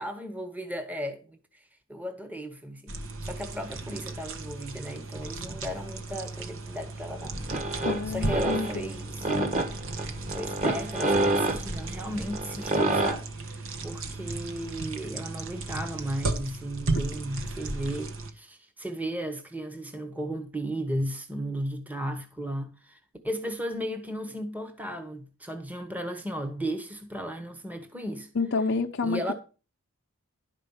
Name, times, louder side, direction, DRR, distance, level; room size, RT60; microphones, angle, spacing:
voice 1, 0.0-1.4 1.9-2.9 3.2-7.3 8.1-9.3 10.3-23.0 23.2-28.3 29.0-29.3, equal, 5° right, 1.1 m, -35 dB
sound 1, 2.9-18.3, right 2 dB, 60° right, 1.4 m, -35 dB
sound 2, 7.2-13.1, right 1 dB, 35° right, 1.8 m, -28 dB
voice 2, 7.8-8.8 16.9-17.0 28.3-29.3, left 4 dB, 55° left, 0.7 m, -29 dB
11.5 x 5.2 x 7.1 m
head